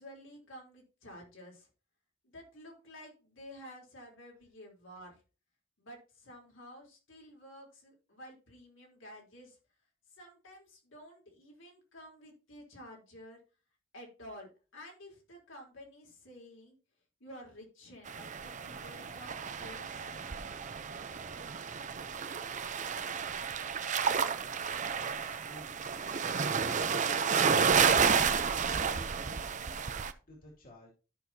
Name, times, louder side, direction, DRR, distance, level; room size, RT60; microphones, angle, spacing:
voice 1, 0.0-1.7 2.2-5.2 5.8-9.6 10.1-13.4 13.9-16.8 17.2-20.8, equal, 80° left, 0 dB, 3.7 m, -51 dB
sound 1, 18.1-30.1, right 6 dB, 40° right, 0.6 m, -31 dB
voice 2, 24.9-25.7 26.4-30.9, equal, 45° left, -1 dB, 2.5 m, -52 dB
13.5 x 6.1 x 2.8 m, 0.33 s
head